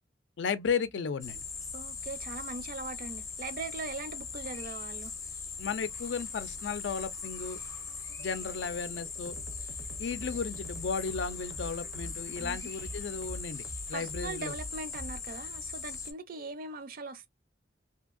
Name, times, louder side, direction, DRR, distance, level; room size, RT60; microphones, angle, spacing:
voice 1, 0.4-1.4 5.6-7.6 8.2-9.4 10.0-13.6 13.9-14.5, left 5 dB, 75° left, 0.4 m, -34 dB
sound 1, 1.2-16.1, left 5 dB, 20° left, 0.5 m, -40 dB
voice 2, 1.7-5.1 12.4-12.7 13.9-17.3, right 3 dB, 55° right, 0.5 m, -40 dB
sound 2, 5.8-15.6, right 1 dB, 80° right, 0.8 m, -46 dB
2.8 x 2.6 x 2.4 m
head